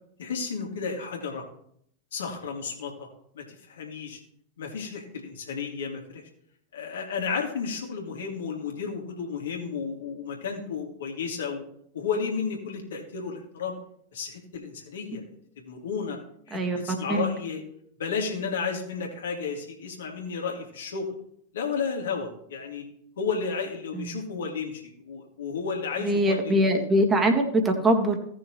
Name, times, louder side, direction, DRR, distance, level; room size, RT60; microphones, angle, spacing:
voice 1, 0.2-1.4 2.1-3.1 3.3-4.2 4.6-6.2 6.7-11.6 11.9-13.7 14.1-15.2 15.6-16.2 16.5-17.6 18.0-21.1 21.5-22.9 23.2-26.8, left 5 dB, 65° left, 1 dB, 2.4 m, -32 dB
voice 2, 16.5-17.3 23.9-24.2 26.0-28.2, right 1 dB, 15° right, 4 dB, 1.9 m, -23 dB
17.0 x 6.3 x 3.2 m, 0.69 s
figure-of-eight pair, 90°, 0 cm